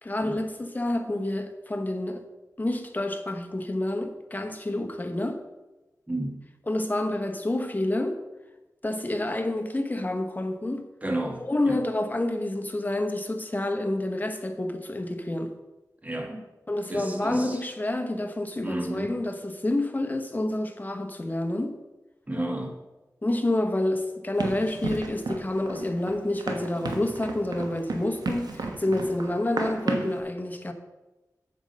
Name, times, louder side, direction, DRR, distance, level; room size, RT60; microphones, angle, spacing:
voice 1, 0.0-2.2 2.6-5.4 6.7-8.2 8.8-10.9 11.4-15.5 16.7-21.8 23.2-30.7, left 1 dB, 25° left, 1.0 m, -28 dB
voice 2, 6.1-6.4 11.0-11.8 16.0-16.5 16.9-17.6 18.6-19.2 22.3-22.7, right 1 dB, 20° right, 1.7 m, -32 dB
Run, 24.4-30.2, right 3 dB, 85° right, 1.2 m, -33 dB
8.1 x 7.4 x 5.4 m
wide cardioid pair, 65°, 7 cm